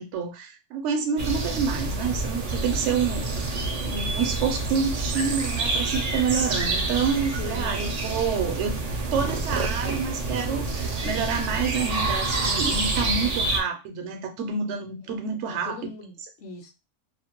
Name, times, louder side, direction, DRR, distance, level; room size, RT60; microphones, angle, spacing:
voice 1, 0.0-3.5 3.8-8.7 9.1-15.8, right 6 dB, 75° right, 5 dB, 0.9 m, -28 dB
sound 1, 1.2-13.6, right 2 dB, 60° right, 0.4 m, -27 dB
voice 2, 7.4-7.7 8.1-8.5 15.0-16.7, left 5 dB, 70° left, 2 dB, 0.8 m, -41 dB
2.5 x 2.1 x 2.9 m, 0.26 s
omnidirectional pair, 1.3 m